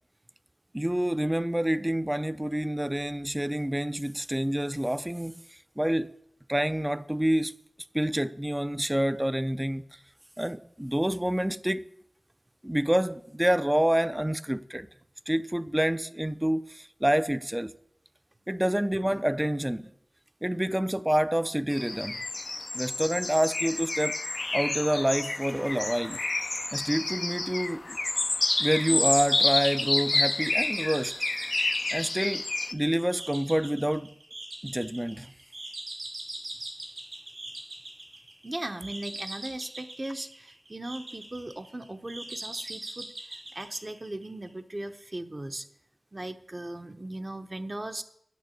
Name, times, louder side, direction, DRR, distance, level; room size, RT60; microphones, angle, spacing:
voice 1, 0.7-5.4 5.8-6.1 6.5-7.5 7.9-9.8 10.4-11.9 12.6-14.9 15.3-17.7 18.5-19.9 20.4-22.2 22.7-24.2 24.5-26.2 26.7-28.0 28.6-31.1 31.9-34.2 34.6-35.3, right 1 dB, 15° right, 0.4 m, -27 dB
sound 1, 21.7-32.7, left 2 dB, 55° left, 0.4 m, -29 dB
sound 2, 28.4-44.5, right 1 dB, 65° right, 3.7 m, -40 dB
voice 2, 38.4-45.7 46.1-48.0, right 1 dB, 35° right, 0.8 m, -38 dB
9.4 x 5.9 x 8.4 m
wide cardioid pair, 55°, 0 cm